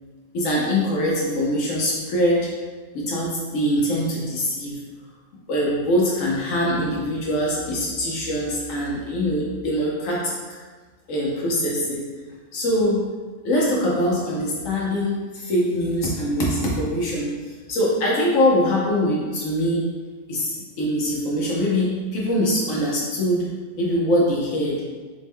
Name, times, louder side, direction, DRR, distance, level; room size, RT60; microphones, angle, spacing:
voice 1, 0.3-2.5 2.9-4.8 5.5-10.6 11.1-12.0 12.5-13.0 13.4-19.9 20.3-23.5 23.8-24.8, equal, 75° left, -4 dB, 1.1 m, -23 dB
4.1 x 2.1 x 3.4 m, 1.4 s
omnidirectional pair, 1.4 m